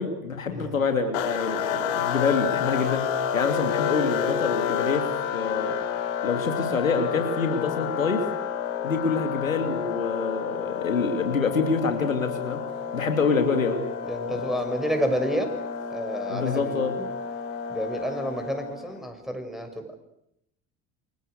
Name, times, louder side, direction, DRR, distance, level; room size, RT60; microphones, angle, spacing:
voice 1, 0.0-3.0 3.3-5.1 5.3-5.7 6.2-8.2 8.8-12.6 12.9-13.8 14.3-14.4 16.3-16.9, left 4 dB, 90° left, 5 dB, 2.9 m, -26 dB
sound 1, 1.1-19.0, left 8 dB, 70° left, 3.2 m, -30 dB
voice 2, 14.1-15.5 15.9-16.8 17.7-19.9, equal, ahead, 5 dB, 7.1 m, -29 dB
29.0 x 26.0 x 6.7 m, 0.80 s
hypercardioid pair, 65°, 39 cm